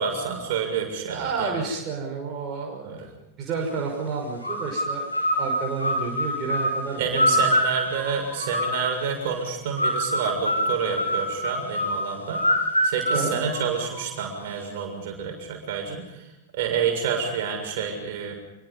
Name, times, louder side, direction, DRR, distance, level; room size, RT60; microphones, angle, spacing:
voice 1, 0.0-1.6 2.8-3.0 7.0-12.4 12.8-16.3 16.5-18.3, right 6 dB, 50° right, 3 dB, 6.9 m, -28 dB
voice 2, 1.1-3.1 3.4-5.1 5.4-7.4 13.1-13.4, right 5 dB, 30° right, -1 dB, 6.0 m, -30 dB
sound 1, 4.4-9.1 9.8-14.2, equal, 85° left, 5.1 m, -26 dB
27.5 x 24.0 x 5.6 m, 0.97 s
figure-of-eight pair, 90°, 0 cm